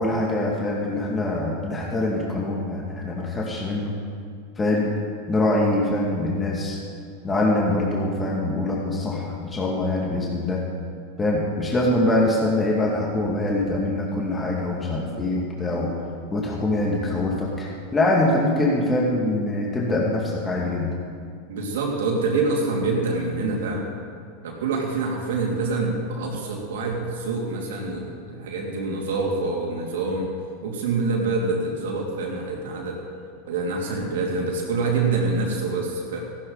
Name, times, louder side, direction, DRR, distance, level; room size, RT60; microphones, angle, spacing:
voice 1, 0.0-4.0 4.6-4.9 5.3-6.8 7.2-10.6 11.2-15.9 16.3-20.9, left 2 dB, 20° left, -3 dB, 2.3 m, -24 dB
voice 2, 21.5-23.8 24.4-30.3 30.6-33.0 33.5-36.2, right 3 dB, 75° right, -1 dB, 2.9 m, -26 dB
14.5 x 12.5 x 4.1 m, 2.2 s
hypercardioid pair, 100°, 0 cm